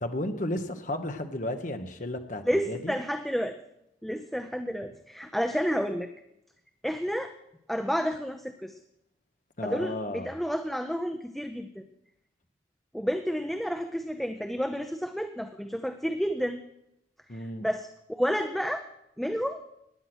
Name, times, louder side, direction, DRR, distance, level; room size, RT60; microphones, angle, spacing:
voice 1, 0.0-2.9 9.6-10.3 17.3-17.7, left 1 dB, 40° left, 6 dB, 1.2 m, -33 dB
voice 2, 2.5-3.5 4.0-6.1 6.8-7.3 7.7-8.8 9.6-11.7 12.9-16.6 17.6-18.8 19.2-19.6, equal, ahead, 6 dB, 0.6 m, -30 dB
16.0 x 10.5 x 6.1 m, 0.81 s
head